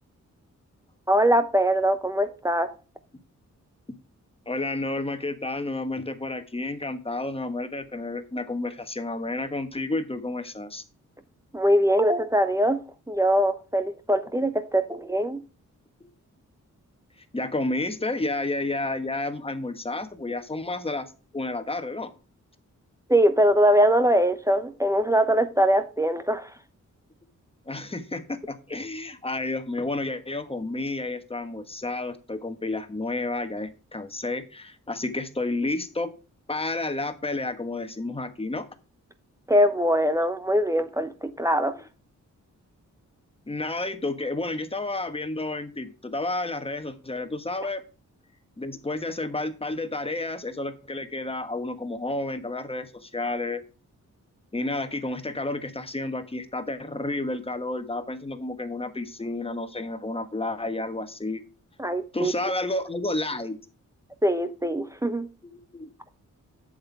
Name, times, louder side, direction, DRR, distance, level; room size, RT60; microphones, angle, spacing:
voice 1, 1.1-2.7 11.5-12.8 13.1-15.4 23.1-26.5 39.5-41.7 61.8-62.3 64.2-65.3, equal, 10° right, 0.8 m, -22 dB
voice 2, 4.5-10.8 16.0-16.1 17.3-22.1 27.7-36.1 36.5-38.7 43.5-47.8 48.6-53.6 54.5-61.4 62.1-63.6 65.4-65.9, left 2 dB, 20° left, 1.3 m, -31 dB
8.0 x 7.9 x 3.3 m
wide cardioid pair, 105°, 31 cm